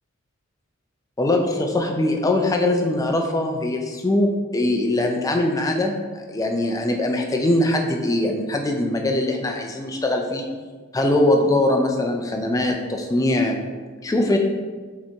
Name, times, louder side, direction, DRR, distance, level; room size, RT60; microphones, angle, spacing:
voice 1, 1.2-10.5 10.9-13.6 14.0-14.4, left 1 dB, 15° left, 2 dB, 0.4 m, -22 dB
5.2 x 2.9 x 3.4 m, 1.4 s
head